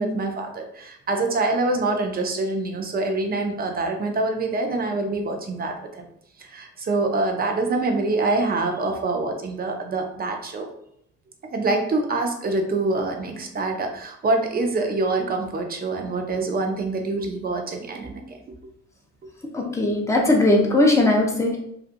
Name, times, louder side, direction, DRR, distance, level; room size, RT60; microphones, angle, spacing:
voice 1, 0.0-6.0 6.4-10.7 11.5-18.4, right 2 dB, 30° right, 3 dB, 0.5 m, -25 dB
voice 2, 19.5-21.6, left 2 dB, 10° left, -1 dB, 0.7 m, -19 dB
2.7 x 2.4 x 2.5 m, 0.72 s
cardioid pair, 90°, 30 cm